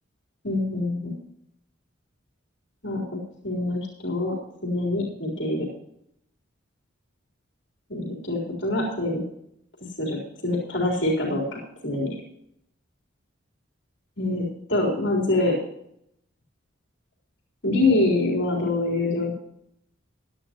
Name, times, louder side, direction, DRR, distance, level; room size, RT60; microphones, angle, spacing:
voice 1, 0.4-1.1 2.8-3.0 3.4-4.4 4.6-5.7 7.9-9.2 10.0-10.2 10.4-11.4 11.8-12.2 14.2-15.6 17.6-19.3, left 2 dB, 60° left, -2 dB, 4.0 m, -25 dB
16.5 x 12.0 x 3.0 m, 0.74 s
head